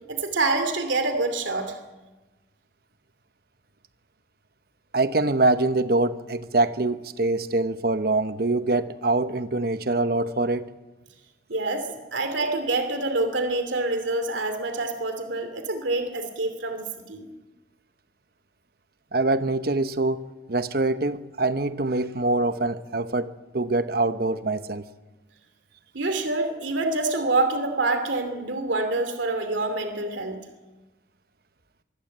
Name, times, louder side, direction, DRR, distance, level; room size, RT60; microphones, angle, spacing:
voice 1, 0.1-1.8 11.5-17.3 25.9-30.4, right 2 dB, 85° right, 2.7 m, -26 dB
voice 2, 4.9-10.7 19.1-24.8, right 2 dB, 55° right, 1.0 m, -24 dB
24.5 x 16.5 x 8.1 m
head